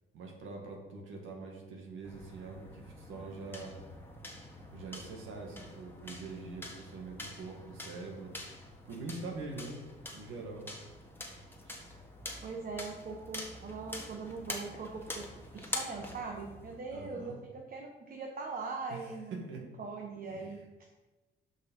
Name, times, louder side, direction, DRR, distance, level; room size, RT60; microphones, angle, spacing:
voice 1, 0.1-3.7 4.7-8.4 8.9-9.8 10.1-10.7 11.6-11.9 16.9-17.4 18.9-19.6 20.3-20.6, right 3 dB, 80° right, 1 dB, 1.9 m, -44 dB
sound 1, 2.0-16.8, left 1 dB, 10° left, 1.5 m, -45 dB
voice 2, 12.4-15.3 15.5-19.4 19.8-20.6, right 4 dB, 45° right, 1 dB, 1.2 m, -41 dB
6.5 x 5.8 x 5.4 m, 1.1 s
cardioid pair, 90°, 20 cm